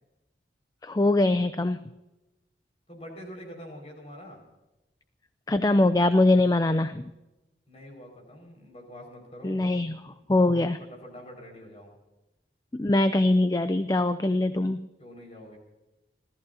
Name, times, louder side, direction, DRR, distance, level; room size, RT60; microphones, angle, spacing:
voice 1, 0.8-1.8 5.5-7.1 9.4-10.8 12.7-14.9, left 2 dB, 20° left, 11 dB, 0.4 m, -23 dB
voice 2, 2.9-4.4 7.7-9.8 10.2-11.9 15.0-15.6, equal, 35° left, 1 dB, 5.2 m, -45 dB
30.0 x 14.0 x 2.8 m, 1.0 s
head